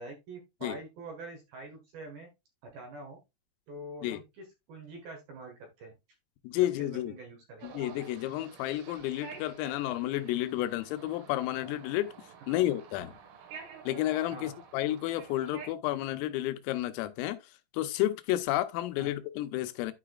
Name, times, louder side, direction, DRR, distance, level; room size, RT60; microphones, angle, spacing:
voice 1, 0.0-2.3 2.6-3.2 3.7-5.9 6.6-7.7 12.5-12.6 14.3-14.5 19.0-19.1, right 2 dB, 60° right, 2.6 m, -45 dB
voice 2, 6.4-7.1 7.6-12.1 12.5-13.1 13.9-17.4 17.7-19.9, left 14 dB, 90° left, 3.4 m, -31 dB
sound 1, 7.6-15.7, right 6 dB, 85° right, 4.3 m, -49 dB
12.5 x 4.9 x 2.4 m
omnidirectional pair, 5.8 m